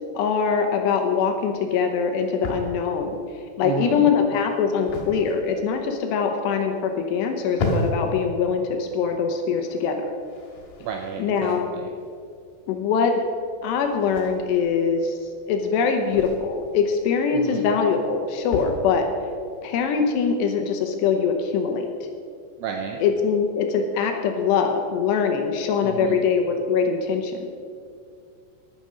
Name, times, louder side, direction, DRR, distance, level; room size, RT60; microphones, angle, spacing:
voice 1, 0.1-10.1 11.2-11.7 12.7-13.3 13.6-19.1 19.6-21.9 23.0-27.5, left 6 dB, 80° left, 4 dB, 2.7 m, -23 dB
sound 1, 0.6-20.3, left 2 dB, 60° left, 3.3 m, -36 dB
voice 2, 3.6-4.1 10.8-11.9 17.3-17.7 22.6-23.0 25.8-26.2, right 7 dB, 80° right, 3 dB, 2.6 m, -32 dB
11.5 x 9.4 x 6.2 m, 2.3 s
omnidirectional pair, 5.5 m